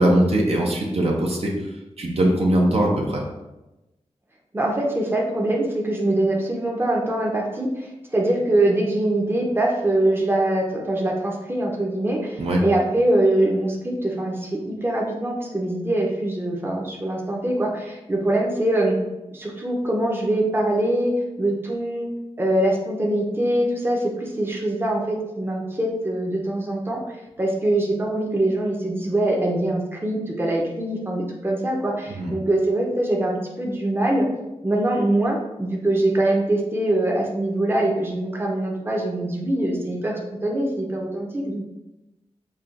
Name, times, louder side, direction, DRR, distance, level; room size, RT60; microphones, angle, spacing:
voice 1, 0.0-1.5 2.0-3.2 12.4-12.6 32.1-32.3, right 1 dB, 65° right, -1 dB, 0.7 m, -20 dB
voice 2, 4.5-19.0 19.3-21.1 21.4-22.1 22.4-27.0 27.4-34.3 34.6-41.6, right 1 dB, 20° right, -1 dB, 0.7 m, -23 dB
5.4 x 2.2 x 2.5 m, 0.99 s
wide cardioid pair, 70°, 11 cm